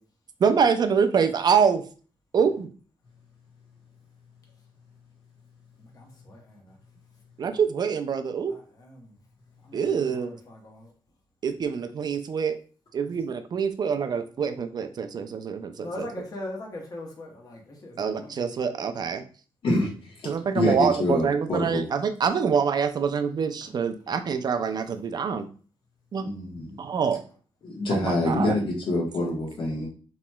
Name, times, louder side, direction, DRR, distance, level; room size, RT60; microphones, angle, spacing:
voice 1, 0.4-1.8 2.3-2.7 7.4-8.5 9.7-10.4 11.4-12.6 12.9-16.1 18.0-19.2 20.3-25.5 26.1-26.3 26.8-27.2 27.9-28.6, right 6 dB, 45° right, 0.4 m, -25 dB
voice 2, 5.8-6.8 8.5-9.1 9.6-10.9 15.8-18.6, left 1 dB, 40° left, 0.8 m, -41 dB
voice 3, 20.5-21.8 26.2-26.8 27.6-29.9, left 1 dB, 60° left, 1.0 m, -26 dB
3.0 x 2.9 x 2.2 m
cardioid pair, 85°, 10 cm